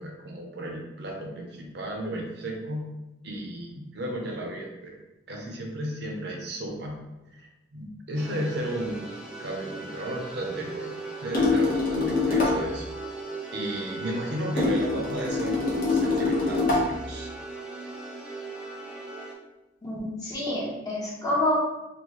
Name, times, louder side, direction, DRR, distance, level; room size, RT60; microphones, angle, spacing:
voice 1, 0.0-2.9 3.2-5.0 5.3-6.9 7.3-9.1 9.4-12.8 13.5-17.3, right 1 dB, 65° right, 1 dB, 0.8 m, -34 dB
sound 1, 8.1-19.3, right 3 dB, 5° right, 0.6 m, -38 dB
sound 2, 11.3-12.7 14.6-17.0, left 3 dB, 50° left, 1.1 m, -24 dB
voice 2, 19.8-21.5, left 1 dB, 20° left, -6 dB, 0.9 m, -28 dB
4.4 x 2.5 x 3.0 m, 1.0 s
head